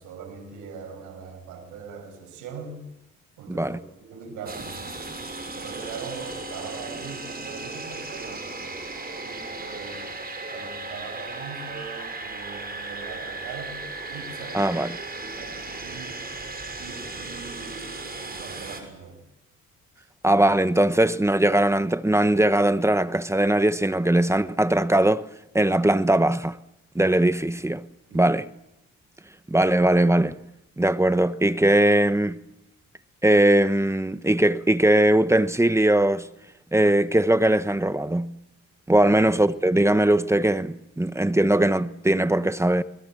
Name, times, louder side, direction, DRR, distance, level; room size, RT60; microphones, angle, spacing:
voice 1, 0.0-2.8 3.4-4.9 5.6-8.8 9.2-10.2 10.5-13.8 14.1-14.8 15.2-16.2 16.8-18.0 18.2-19.2 20.0-20.1 28.1-28.4 39.0-39.2, right 5 dB, 90° right, 5.8 m, -41 dB
voice 2, 3.5-3.8 14.5-14.9 20.2-25.3 25.5-26.6 26.9-27.8 28.1-28.4 29.5-30.4 30.8-32.4 33.2-36.3 36.7-38.3 38.9-42.8, right 1 dB, 10° right, 1.1 m, -20 dB
sound 1, 4.5-18.8, right 3 dB, 30° right, 6.4 m, -36 dB
28.5 x 21.5 x 7.6 m
cardioid pair, 90°, 30 cm